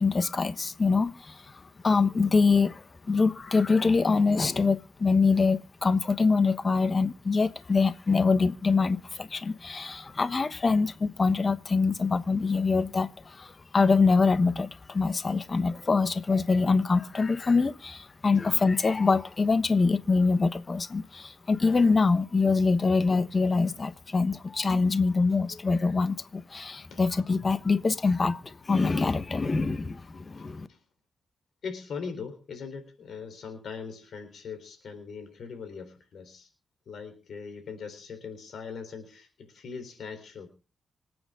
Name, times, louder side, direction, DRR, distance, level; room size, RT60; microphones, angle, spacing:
voice 1, 0.0-30.7, left 4 dB, 35° left, 1.2 m, -24 dB
voice 2, 30.4-30.8 31.6-36.5 36.9-40.5, left 5 dB, 75° left, 3.9 m, -40 dB
26.0 x 9.1 x 3.8 m
cardioid pair, 90°, 0 cm